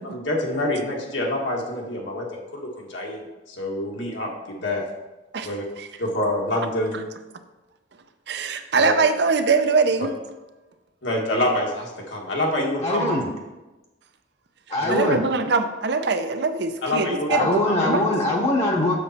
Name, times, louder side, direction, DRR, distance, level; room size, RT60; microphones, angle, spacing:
voice 1, 0.0-4.8 5.4-5.6 6.0-7.0 8.7-9.0 11.0-13.1 14.8-15.0 16.8-17.9, left 1 dB, 75° left, -1 dB, 1.6 m, -27 dB
voice 2, 8.3-10.1 14.9-18.0, right 4 dB, 60° right, 9 dB, 0.6 m, -22 dB
voice 3, 12.8-13.3 14.7-15.2 17.3-18.9, left 1 dB, 35° left, -1 dB, 0.9 m, -22 dB
6.8 x 6.8 x 4.3 m, 1.1 s
head